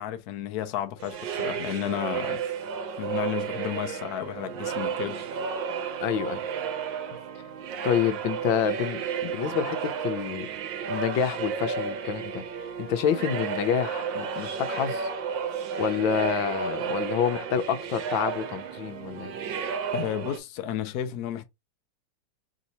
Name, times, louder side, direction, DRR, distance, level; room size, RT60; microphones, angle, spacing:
voice 1, 0.0-2.4 3.0-5.3 9.2-9.5 19.9-21.5, left 11 dB, 65° left, 1.1 m, -32 dB
sound 1, 1.0-20.4, right 6 dB, 80° right, 1.5 m, -32 dB
voice 2, 6.0-6.4 7.8-9.0 9.3-10.5 10.9-12.4 12.8-15.1 15.8-19.3, left 8 dB, 90° left, 1.5 m, -28 dB
3.7 x 2.7 x 4.1 m
omnidirectional pair, 2.0 m